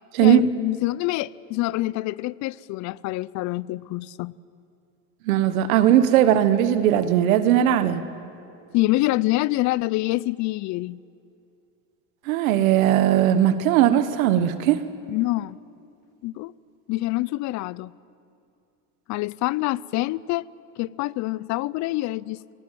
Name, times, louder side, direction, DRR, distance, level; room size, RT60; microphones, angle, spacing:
voice 1, 0.2-4.4 8.7-11.0 15.1-15.6 16.2-16.5 16.9-17.9 19.1-20.5 20.8-22.5, left 19 dB, 45° left, 22 dB, 0.5 m, -26 dB
voice 2, 5.2-8.0 12.2-14.8, right 11 dB, 90° right, 11 dB, 1.5 m, -18 dB
26.0 x 18.5 x 7.5 m, 2.6 s
supercardioid pair, 130°, 40 cm